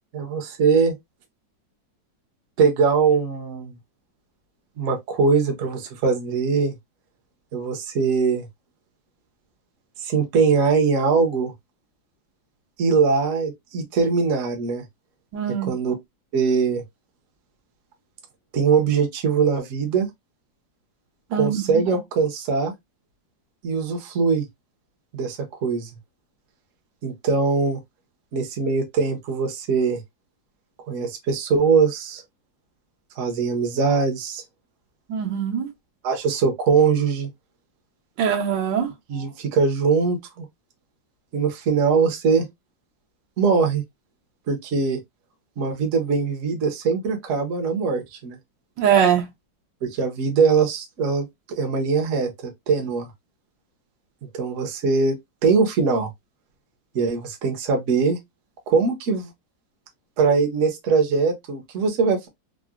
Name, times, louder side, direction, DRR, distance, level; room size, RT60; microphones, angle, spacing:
voice 1, 0.1-0.9 2.6-3.8 4.8-6.7 7.5-8.5 10.0-11.5 12.8-14.8 15.7-15.9 16.3-16.8 18.5-20.1 21.3-22.7 23.6-24.4 25.1-25.9 27.0-27.8 28.3-30.0 30.9-32.2 33.2-34.4 36.0-37.3 39.1-40.4 41.3-42.5 43.4-43.8 44.5-45.0 45.6-48.4 49.8-53.1 54.3-55.2 55.4-56.1 56.9-58.2 58.7-59.3 60.2-62.3, right 5 dB, 55° right, 0.9 m, -21 dB
voice 2, 15.3-15.7 21.3-21.8 35.1-35.7 38.2-38.9 48.8-49.3, right 8 dB, 75° right, 1.4 m, -22 dB
3.8 x 2.0 x 2.3 m
omnidirectional pair, 2.0 m